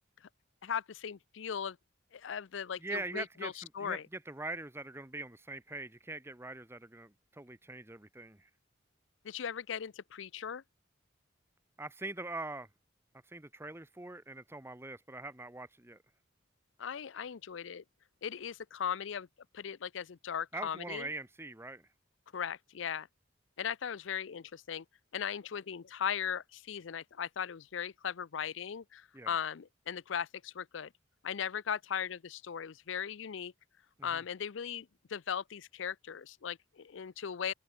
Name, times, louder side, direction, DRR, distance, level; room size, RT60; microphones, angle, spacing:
voice 1, 0.6-1.8 2.1-4.0 9.2-10.6 16.8-17.8 18.2-19.3 19.5-21.1 22.3-23.1 23.6-24.8 25.1-30.9 31.2-33.5 34.0-37.5, left 8 dB, 70° left, 0.5 m, -38 dB
voice 2, 2.8-8.5 11.8-12.7 13.3-16.0 20.5-21.9 29.1-29.3 34.0-34.2, right 2 dB, 15° right, 1.1 m, -43 dB
head